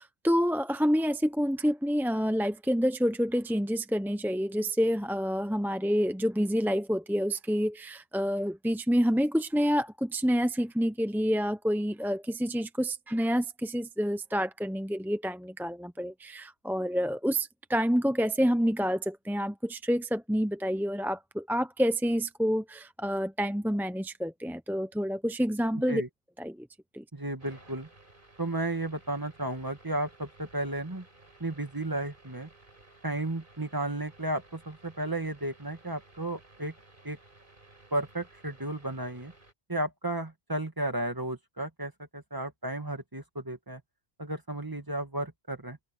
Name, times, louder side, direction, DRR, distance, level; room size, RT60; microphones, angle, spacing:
voice 1, 0.0-26.0 26.4-26.7 26.9-27.0, equal, ahead, 0.5 m, -28 dB
voice 2, 27.1-27.9 28.4-31.0 31.4-32.5 33.0-36.7 37.0-37.2 37.9-39.3 39.7-43.8 44.2-45.8, right 1 dB, 20° right, 1.9 m, -33 dB
sound 1, 27.4-39.5, right 2 dB, 50° right, 4.4 m, -57 dB
omnidirectional pair, 1.1 m